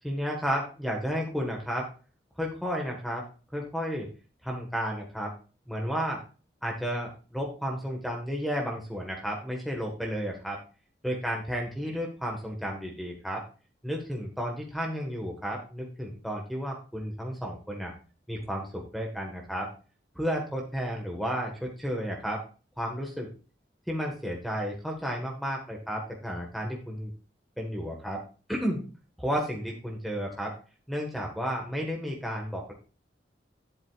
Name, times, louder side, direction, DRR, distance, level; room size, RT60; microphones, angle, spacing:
voice 1, 0.0-1.9 2.4-3.2 3.5-4.1 4.4-5.3 5.7-6.2 6.6-10.6 11.0-13.4 13.8-17.9 18.3-19.7 20.1-22.4 22.8-23.3 23.9-27.1 27.6-28.2 28.5-28.9 29.2-30.5 30.9-32.7, equal, ahead, 0 dB, 1.4 m, -32 dB
11.0 x 7.9 x 2.4 m, 0.35 s
head